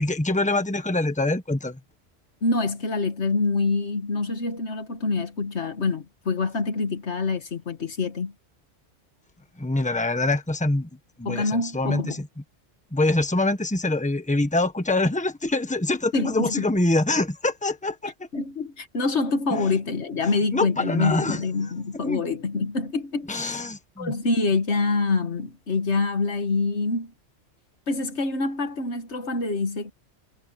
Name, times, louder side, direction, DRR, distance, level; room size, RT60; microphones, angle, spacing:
voice 1, 0.0-1.8 9.6-10.9 11.2-12.3 12.9-18.1 19.5-19.7 20.5-21.4 22.0-22.2 23.3-24.1, left 2 dB, 5° left, 1.4 m, -24 dB
voice 2, 2.4-8.3 11.3-12.2 16.1-16.7 18.3-23.6 24.0-27.1 27.9-29.9, left 3 dB, 65° left, 1.8 m, -26 dB
omnidirectional pair, 1.2 m